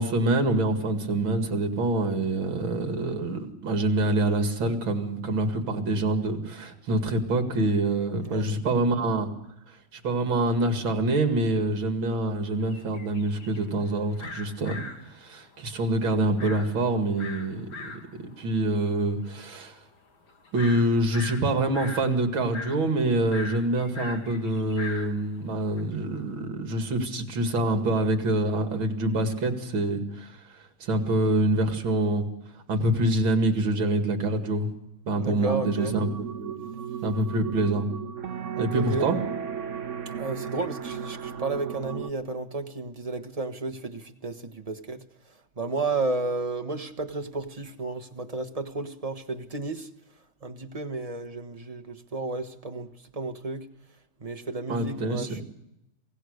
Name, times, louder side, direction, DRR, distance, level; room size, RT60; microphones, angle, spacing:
voice 1, 0.0-9.3 9.9-14.8 15.2-17.7 18.2-19.7 20.5-30.4 30.8-32.3 32.7-34.7 35.1-36.6 37.0-37.9 38.6-39.2 54.7-55.4, right 2 dB, 70° right, 6 dB, 3.1 m, -26 dB
voice 2, 8.1-8.5 35.2-36.0 38.6-39.1 40.0-45.0 45.6-49.9 50.4-53.7 54.2-55.4, right 3 dB, 20° right, 7 dB, 1.1 m, -32 dB
sound 1, 12.6-25.8, left 3 dB, 75° left, 3.2 m, -41 dB
sound 2, 35.4-42.1, right 8 dB, 45° right, 1.1 m, -35 dB
27.0 x 17.0 x 6.6 m, 0.83 s
omnidirectional pair, 2.3 m